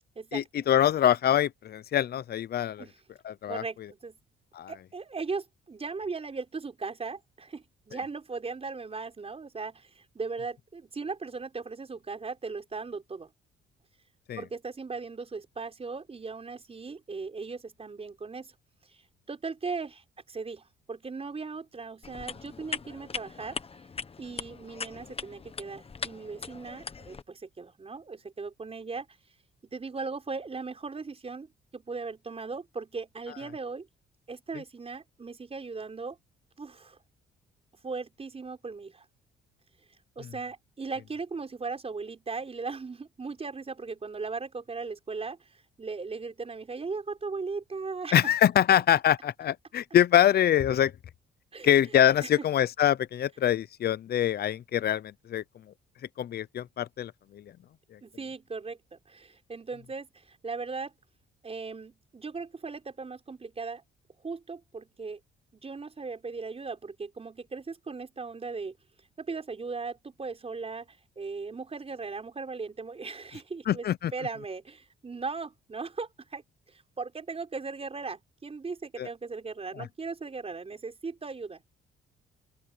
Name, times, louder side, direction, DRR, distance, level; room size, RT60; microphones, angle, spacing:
voice 1, 0.3-2.8 3.2-3.6 4.6-4.7 14.3-14.4 48.1-50.9 51.6-55.4 56.2-57.1 73.7-74.1 79.0-79.1, left 10 dB, 50° left, 0.7 m, -24 dB
voice 2, 3.5-4.2 4.7-13.3 14.4-18.5 18.9-19.0 19.3-23.6 24.2-29.1 29.7-33.9 34.3-36.2 36.6-37.0 37.8-39.1 40.2-48.3 51.5-51.7 52.2-52.5 58.0-60.9 61.4-63.8 64.2-65.2 65.5-68.8 69.2-76.4 76.7-81.6, right 4 dB, 30° right, 5.4 m, -38 dB
sound 1, 22.0-27.2, left 5 dB, 30° left, 1.2 m, -40 dB
open air
cardioid pair, 90°, 20 cm